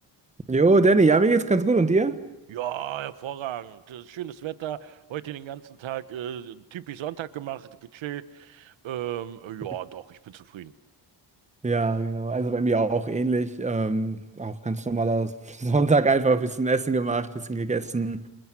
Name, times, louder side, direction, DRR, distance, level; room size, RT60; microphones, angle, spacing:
voice 1, 0.5-2.2 11.6-18.3, right 3 dB, 15° right, 1.4 m, -23 dB
voice 2, 2.5-10.7, right 12 dB, 85° right, 1.3 m, -35 dB
30.0 x 28.0 x 6.2 m
cardioid pair, 140°, 45 cm